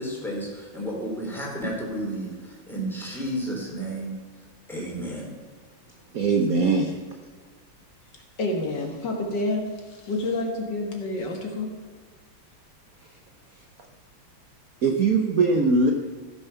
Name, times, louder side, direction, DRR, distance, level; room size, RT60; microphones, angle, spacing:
voice 1, 0.0-4.2 4.7-5.3, right 1 dB, ahead, -3 dB, 3.2 m, -32 dB
voice 2, 6.1-6.9 14.8-15.9, right 3 dB, 55° right, 3 dB, 1.1 m, -21 dB
voice 3, 8.4-11.7, left 2 dB, 60° left, 2 dB, 2.2 m, -28 dB
15.0 x 7.0 x 5.7 m, 1.5 s
omnidirectional pair, 2.2 m